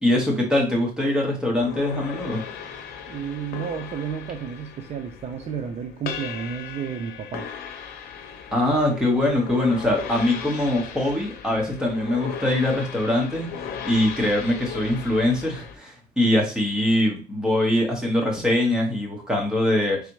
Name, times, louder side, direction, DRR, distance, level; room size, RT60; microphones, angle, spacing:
voice 1, 0.0-2.4 8.5-20.0, left 1 dB, 5° right, -2 dB, 1.5 m, -23 dB
sound 1, 1.5-15.8, left 7 dB, 75° left, 0.7 m, -37 dB
voice 2, 3.1-7.5, right 7 dB, 45° right, 5 dB, 0.5 m, -32 dB
4.1 x 3.4 x 3.1 m, 0.35 s
cardioid pair, 125°, 16 cm